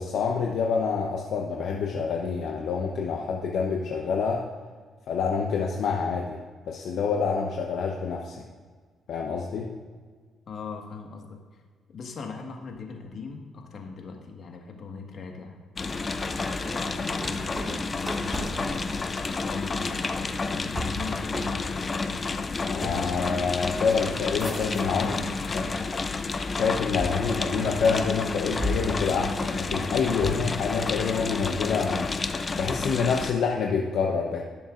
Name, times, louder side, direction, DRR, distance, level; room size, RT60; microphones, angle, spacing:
voice 1, 0.0-4.4 5.1-6.4 6.7-8.4 9.1-9.7 22.6-25.1 25.5-25.6 26.5-32.1 32.5-34.4, left 5 dB, 75° left, 0 dB, 0.8 m, -27 dB
voice 2, 10.5-11.6 11.9-15.6 16.7-18.8 19.4-22.3 25.0-25.6, left 4 dB, 60° left, 2 dB, 1.6 m, -40 dB
sound 1, 15.8-33.3, left 4 dB, 35° left, 0.6 m, -30 dB
sound 2, 16.1-25.2 25.6-26.3 27.0-28.1 28.6-30.7, equal, 10° right, 1.9 m, -37 dB
17.0 x 7.1 x 2.5 m, 1.5 s
cardioid pair, 90°, 0 cm